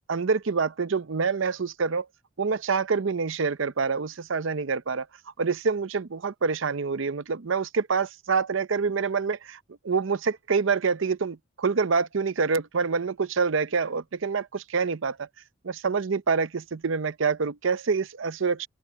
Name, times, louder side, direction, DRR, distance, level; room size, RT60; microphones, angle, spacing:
voice 1, 0.1-2.1 2.4-5.1 5.4-9.6 9.8-15.3 15.6-18.7, right 5 dB, 75° right, 0.7 m, -26 dB
open air
head